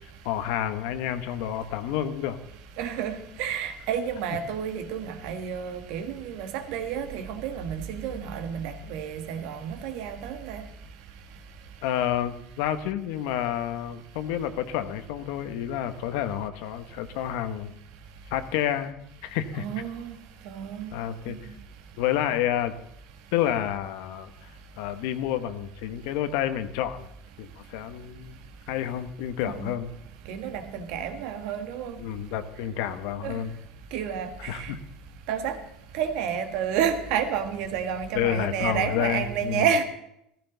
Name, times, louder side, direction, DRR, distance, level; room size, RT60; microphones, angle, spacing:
voice 1, 0.2-2.4 11.8-17.8 18.3-19.6 20.9-21.4 22.0-22.7 23.3-24.5 24.8-27.1 27.4-28.4 28.7-29.9 32.0-33.5 34.5-34.8 38.1-39.6, left 11 dB, 70° left, 1.2 m, -29 dB
voice 2, 2.8-10.6 19.6-20.2 20.4-20.9 21.3-21.4 29.4-29.7 30.3-31.9 33.2-33.4 33.9-34.7 35.3-35.6 35.9-39.8, right 8 dB, 65° right, 1.6 m, -30 dB
15.0 x 15.0 x 4.0 m
cardioid pair, 150°, 0 cm